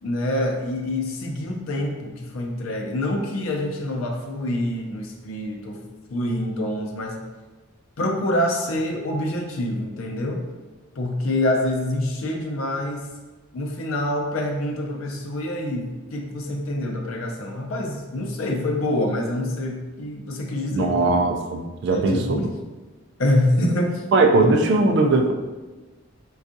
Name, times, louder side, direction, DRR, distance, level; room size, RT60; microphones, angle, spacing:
voice 1, 0.0-5.8 6.1-7.2 8.0-10.4 11.0-13.1 13.5-21.2 21.9-22.5 23.2-24.0 24.4-24.5, left 1 dB, 80° left, 2 dB, 0.5 m, -26 dB
voice 2, 20.7-22.2 24.1-25.3, right 2 dB, 55° right, 3 dB, 0.3 m, -19 dB
3.5 x 2.3 x 2.6 m, 1.2 s
head